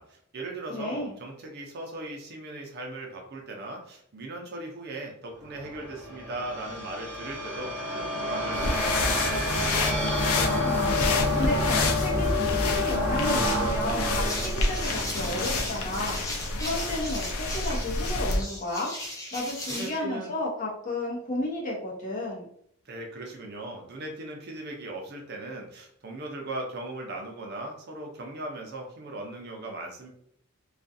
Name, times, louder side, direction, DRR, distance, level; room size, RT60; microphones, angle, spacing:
voice 1, 0.0-9.5 19.7-20.3 22.9-30.1, right 2 dB, 50° right, 1 dB, 0.6 m, -38 dB
voice 2, 0.7-1.2 10.3-18.9 19.3-22.5, left 1 dB, 40° left, -3 dB, 0.8 m, -33 dB
sound 1, 5.5-15.8, left 1 dB, 5° right, 1.4 m, -29 dB
sound 2, 8.5-18.4, left 3 dB, 80° left, 0.4 m, -29 dB
sound 3, 14.1-20.0, left 1 dB, 15° left, 0.5 m, -37 dB
2.4 x 2.3 x 2.6 m, 0.67 s
head